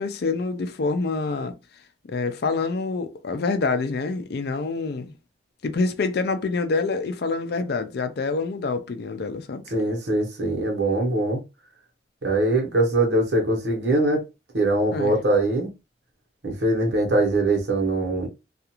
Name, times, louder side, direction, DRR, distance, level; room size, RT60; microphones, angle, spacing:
voice 1, 0.0-1.6 2.1-5.2 5.6-9.6 14.9-15.2, left 4 dB, 60° left, 0.4 m, -26 dB
voice 2, 9.7-11.4 12.2-14.2 14.5-15.7 16.4-18.3, right 2 dB, 70° right, 1.0 m, -22 dB
2.4 x 2.4 x 2.9 m
head